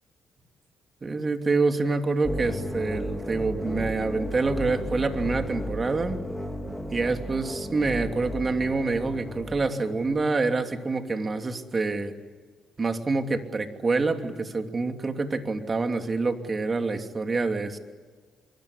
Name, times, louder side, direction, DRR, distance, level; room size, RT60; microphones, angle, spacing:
voice 1, 1.0-6.2 6.9-12.1 12.8-17.8, right 3 dB, 30° right, 6 dB, 3.0 m, -26 dB
sound 1, 2.2-10.3, left 1 dB, 5° left, 3.2 m, -34 dB
25.0 x 23.5 x 10.0 m, 1.4 s
cardioid pair, 90°, 0 cm